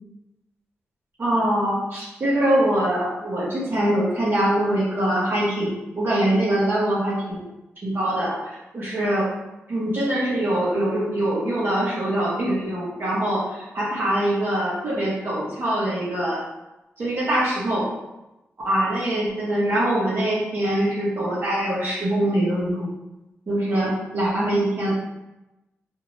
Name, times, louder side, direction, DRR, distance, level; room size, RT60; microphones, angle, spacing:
voice 1, 1.2-7.5 7.8-9.2 9.7-16.4 17.0-17.8 18.6-22.9 23.5-24.9, right 1 dB, 50° right, -8 dB, 1.2 m, -23 dB
2.8 x 2.4 x 3.2 m, 0.97 s
cardioid pair, 60°, 5 cm